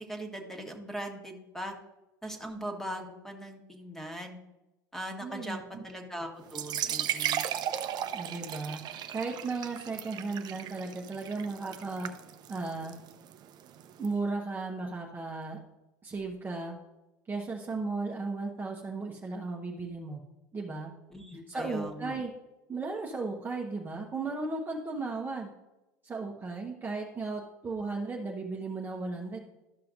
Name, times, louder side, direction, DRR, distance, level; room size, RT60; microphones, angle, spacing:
voice 1, 0.1-1.7 2.2-4.4 4.9-5.6 5.8-7.5 21.1-22.1, right 1 dB, 5° left, 3 dB, 1.5 m, -40 dB
voice 2, 5.2-5.8 8.1-12.1 12.5-13.0 14.0-15.6 16.0-16.8 17.3-20.2 20.5-20.9 21.5-22.3 22.7-25.5 26.0-29.4, right 3 dB, 20° right, -1 dB, 1.0 m, -35 dB
sound 1, 6.5-14.1, right 10 dB, 45° right, 0.6 m, -36 dB
13.0 x 5.6 x 2.6 m, 0.99 s
hypercardioid pair, 80°, 10 cm